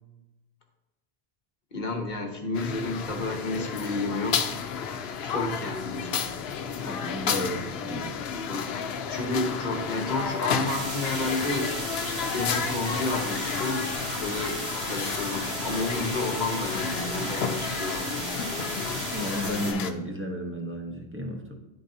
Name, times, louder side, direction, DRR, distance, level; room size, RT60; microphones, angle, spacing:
voice 1, 1.7-4.6 5.2-6.3 8.5-8.7 9.1-11.7 12.3-13.9 14.2-18.3, left 2 dB, 50° left, 3 dB, 0.9 m, -31 dB
sound 1, 2.5-19.9, left 6 dB, 75° left, 0.8 m, -32 dB
voice 2, 6.8-8.1 19.1-21.5, equal, 15° right, 1 dB, 0.7 m, -33 dB
sound 2, 10.7-19.7, right 2 dB, 90° right, 1.6 m, -35 dB
10.5 x 3.9 x 2.6 m, 1.0 s
omnidirectional pair, 1.0 m